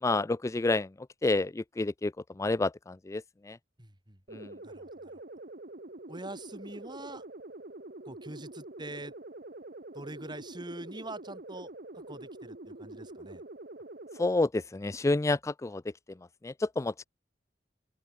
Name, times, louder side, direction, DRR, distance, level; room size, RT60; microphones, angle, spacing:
voice 1, 0.0-3.6 4.3-4.5 14.2-15.8 16.4-17.1, left 2 dB, 15° left, 0.4 m, -29 dB
voice 2, 3.8-5.2 6.1-7.2 8.0-9.1 9.9-13.4, right 1 dB, 25° right, 6.3 m, -44 dB
sound 1, 4.3-14.3, right 2 dB, 55° right, 1.6 m, -46 dB
open air
head